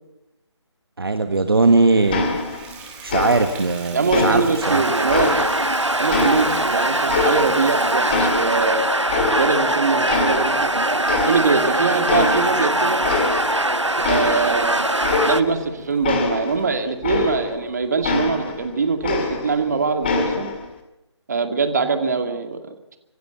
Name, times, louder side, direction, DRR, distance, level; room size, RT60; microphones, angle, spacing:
voice 1, 1.0-2.3 3.0-4.4 4.7-4.8, right 3 dB, 55° right, 8 dB, 1.5 m, -19 dB
Water tap faucet / Bathtub (filling or washing), 1.6-16.0 16.6-16.7 17.2-17.3 17.6-17.7, right 6 dB, 10° right, 2.4 m, -42 dB
sound 1, 2.1-2.8 3.1-3.7 4.1-5.7 6.1-7.8 8.1-9.7 10.1-10.8 11.1-11.7 12.1-12.6 13.0-13.7 14.0-17.7 18.0-19.7 20.0-20.7, left 4 dB, 20° left, 2.2 m, -25 dB
voice 2, 3.9-8.8 9.3-10.7 11.2-13.0 14.1-15.0 15.2-20.5 21.3-23.0, right 4 dB, 35° right, 7 dB, 2.3 m, -23 dB
sound 2, 4.6-15.4, right 1 dB, 90° right, 1.2 m, -21 dB
25.5 x 12.5 x 8.0 m, 0.90 s
figure-of-eight pair, 155°, 15 cm